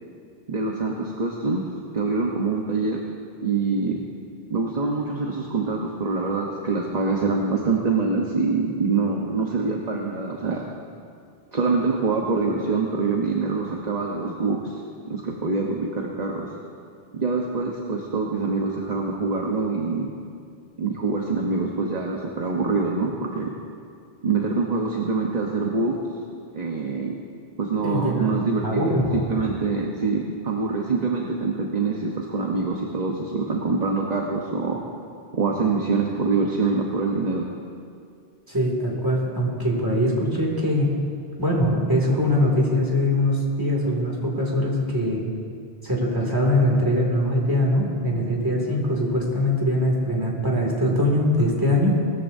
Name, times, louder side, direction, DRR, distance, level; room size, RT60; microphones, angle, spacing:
voice 1, 0.5-1.6 1.9-3.0 3.4-4.0 4.5-10.6 11.5-14.8 15.0-16.5 17.1-20.1 20.8-23.5 24.2-26.0 26.5-27.2 27.6-34.8 35.3-37.4, right 4 dB, 40° right, 0 dB, 1.1 m, -25 dB
voice 2, 27.8-28.3 28.6-29.2 38.5-40.9 41.4-45.2 45.8-52.0, left 1 dB, 20° right, -2 dB, 2.5 m, -22 dB
20.0 x 14.0 x 2.7 m, 2.3 s
omnidirectional pair, 1.2 m